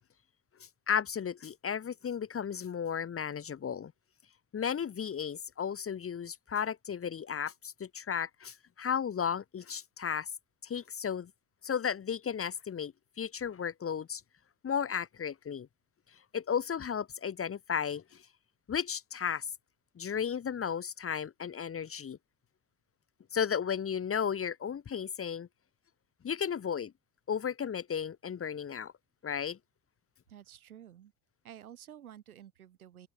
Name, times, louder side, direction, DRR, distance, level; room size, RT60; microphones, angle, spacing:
voice 1, 0.9-3.9 4.5-10.3 10.6-11.3 11.6-14.2 14.6-15.7 16.3-18.2 18.7-19.5 20.0-22.2 23.3-25.5 26.2-26.9 27.3-28.9 29.2-29.6, left 7 dB, 30° left, 1.6 m, -34 dB
voice 2, 30.3-31.1 31.4-33.1, right 10 dB, 80° right, 6.9 m, -51 dB
figure-of-eight pair, 55°, 42 cm